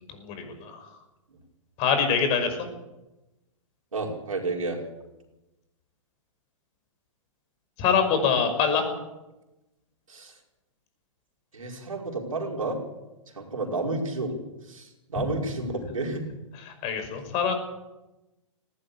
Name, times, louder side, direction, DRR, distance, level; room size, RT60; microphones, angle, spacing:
voice 1, 0.2-0.8 1.8-2.6 7.8-8.9 15.2-15.3 16.7-17.5, left 6 dB, 35° left, 7 dB, 5.7 m, -24 dB
voice 2, 3.9-4.8 10.1-10.3 11.5-12.8 13.4-14.4 14.7-16.2, right 2 dB, 85° right, 0 dB, 5.3 m, -31 dB
19.0 x 16.5 x 8.5 m, 1.0 s
hypercardioid pair, 115°, 17 cm